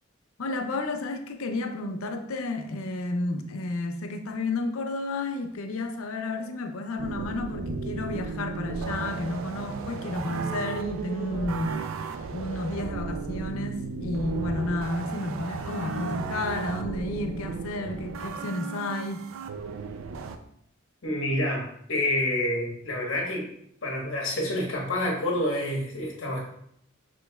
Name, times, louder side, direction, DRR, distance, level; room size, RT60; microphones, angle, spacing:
voice 1, 0.4-11.8 12.3-19.3, left 2 dB, 90° left, 0.5 m, -31 dB
sound 1, 7.0-20.4, right 4 dB, 75° right, 0.4 m, -34 dB
voice 2, 21.0-23.5 23.8-26.4, left 1 dB, 65° left, 1.2 m, -28 dB
6.1 x 3.1 x 2.2 m
head